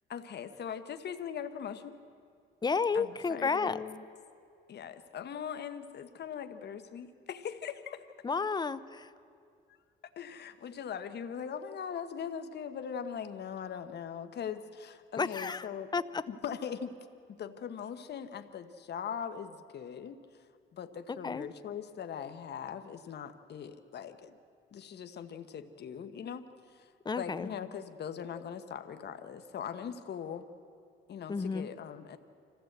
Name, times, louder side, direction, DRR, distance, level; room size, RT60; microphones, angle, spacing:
voice 1, 0.1-2.0 2.9-4.0 4.7-8.1 10.2-15.9 16.3-16.9 17.3-24.4 24.7-30.5 31.1-32.2, left 7 dB, 55° left, 9 dB, 1.1 m, -41 dB
voice 2, 2.6-3.8 8.2-9.1 15.2-15.6 15.9-16.0 21.2-21.5 27.1-27.5 31.3-31.7, left 5 dB, 20° left, 14 dB, 0.7 m, -31 dB
25.5 x 15.0 x 8.0 m, 2.4 s
cardioid pair, 90°, 20 cm